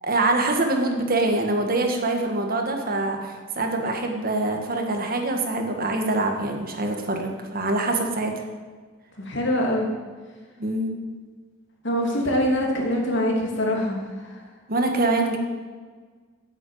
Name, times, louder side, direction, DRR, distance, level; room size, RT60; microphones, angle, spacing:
voice 1, 0.0-8.3 10.6-10.9 14.7-15.4, right 2 dB, 50° right, 4 dB, 1.6 m, -24 dB
voice 2, 9.2-9.9 11.8-14.4, equal, 65° left, 0 dB, 2.7 m, -24 dB
9.5 x 7.8 x 8.8 m, 1.5 s
head